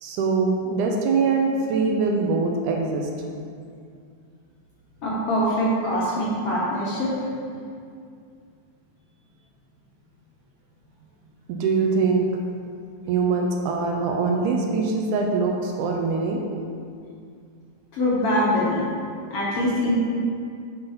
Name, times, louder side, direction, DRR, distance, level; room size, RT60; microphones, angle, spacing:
voice 1, 0.0-3.1 11.5-12.3 13.1-16.4, right 4 dB, 80° right, 1 dB, 2.1 m, -23 dB
voice 2, 5.0-7.1 17.9-18.8 19.3-19.9, equal, 60° left, -7 dB, 1.7 m, -23 dB
8.8 x 3.9 x 5.6 m, 2.3 s
omnidirectional pair, 3.8 m